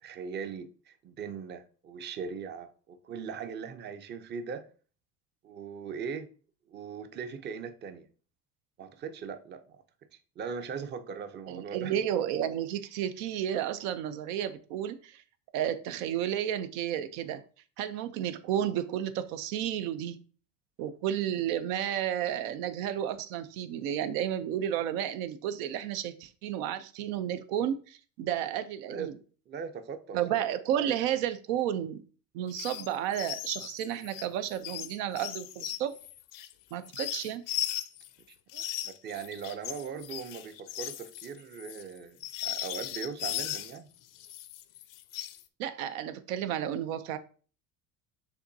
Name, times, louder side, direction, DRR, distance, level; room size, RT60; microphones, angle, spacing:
voice 1, 0.0-4.7 5.4-6.3 6.7-8.1 8.8-9.8 10.1-11.9 28.9-29.2 29.5-30.4 38.5-43.9, right 6 dB, 25° right, 0.4 m, -40 dB
voice 2, 11.5-15.2 15.5-17.4 17.8-20.2 20.8-29.2 30.1-32.0 32.3-36.0 36.7-37.4 45.6-47.2, right 10 dB, 85° right, 0.5 m, -32 dB
sound 1, 32.5-32.9 33.1-38.1 38.5-43.8 44.2-45.4, left 13 dB, 50° left, 0.5 m, -37 dB
6.6 x 2.6 x 2.6 m
supercardioid pair, 90°, 41 cm